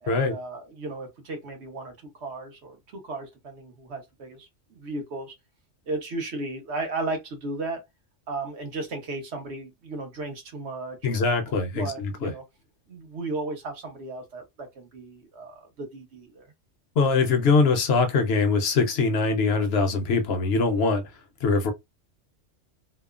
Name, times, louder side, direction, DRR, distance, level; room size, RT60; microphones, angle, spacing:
voice 1, 0.0-5.3 5.9-7.8 8.3-12.4 12.9-16.5, right 2 dB, 65° right, 1.1 m, -35 dB
voice 2, 11.0-12.3 17.0-21.0 21.4-21.7, left 4 dB, 65° left, 0.8 m, -22 dB
2.9 x 2.0 x 2.3 m
omnidirectional pair, 1.2 m